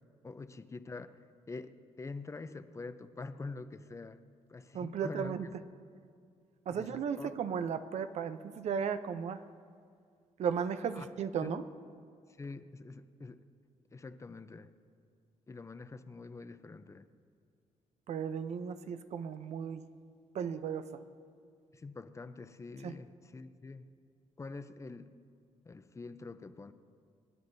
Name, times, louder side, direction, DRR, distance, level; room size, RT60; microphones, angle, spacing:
voice 1, 0.2-1.1 1.5-4.2 4.5-5.4 6.7-7.3 10.9-11.1 11.4-11.6 12.4-13.4 13.9-14.7 15.5-17.1 21.7-23.1 23.3-23.9 24.4-25.1 25.7-26.7, left 3 dB, 25° left, 11 dB, 0.5 m, -45 dB
voice 2, 4.7-5.5 6.7-9.4 10.4-11.7 18.1-19.8 20.3-21.0 22.8-23.0, right 7 dB, 65° right, 11 dB, 0.6 m, -35 dB
27.0 x 9.6 x 2.7 m, 2.2 s
cardioid pair, 90°, 12 cm